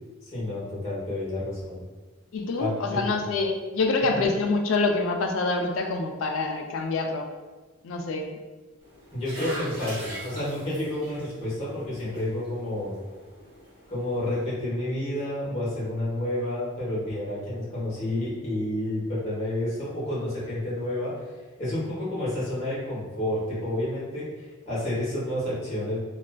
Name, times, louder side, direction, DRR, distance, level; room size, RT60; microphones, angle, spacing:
voice 1, 0.2-1.8 2.6-3.2 4.0-4.3 9.1-13.0 13.9-21.2 21.6-26.0, left 1 dB, 30° left, -8 dB, 0.9 m, -30 dB
voice 2, 2.3-7.3 7.8-8.3, left 3 dB, 70° left, 4 dB, 0.3 m, -26 dB
sound 1, 8.8-14.4, right 1 dB, 40° right, 1.1 m, -42 dB
2.4 x 2.3 x 2.2 m, 1.3 s
head